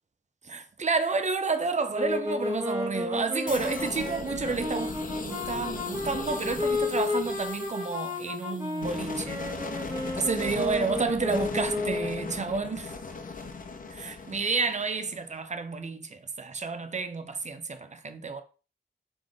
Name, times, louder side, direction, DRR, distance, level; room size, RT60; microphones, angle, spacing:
voice 1, 0.4-9.4 10.1-13.0 13.9-18.4, right 4 dB, 35° right, 0.5 m, -30 dB
sound 1, 1.9-12.3, left 2 dB, 15° right, 1.5 m, -32 dB
hard attack, 3.5-15.3, left 4 dB, 45° left, 0.6 m, -38 dB
3.6 x 3.5 x 3.6 m
wide cardioid pair, 110°, 20 cm